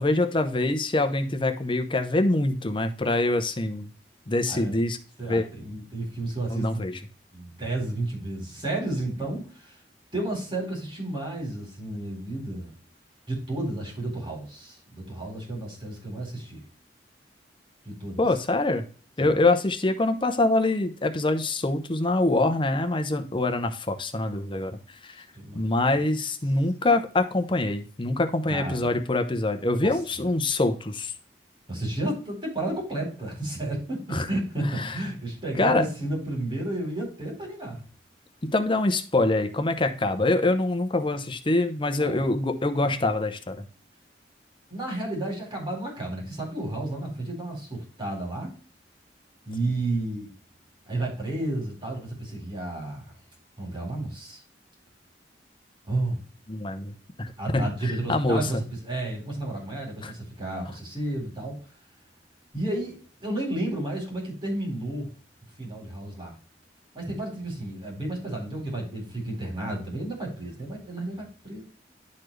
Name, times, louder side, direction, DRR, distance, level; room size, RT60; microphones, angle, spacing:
voice 1, 0.0-3.9 4.3-5.0 5.3-5.5 6.5-7.0 18.2-18.9 19.2-25.2 25.5-31.1 34.1-34.3 34.6-35.0 35.6-35.8 38.4-43.6 56.5-56.9 57.2-58.6 60.0-60.1, left 2 dB, 30° left, 7 dB, 0.8 m, -25 dB
voice 2, 5.2-6.8 7.3-9.7 10.1-12.8 13.3-16.6 17.8-18.2 19.2-19.4 25.4-25.6 25.9-26.0 28.5-29.0 29.8-30.0 31.7-37.8 42.0-42.2 42.8-42.9 44.7-48.5 49.5-50.3 50.9-53.1 53.6-54.4 55.9-56.2 57.4-61.6 62.5-65.1 65.6-66.3 66.9-71.6, right 1 dB, 30° right, -1 dB, 3.9 m, -32 dB
10.5 x 4.2 x 3.3 m, 0.39 s
head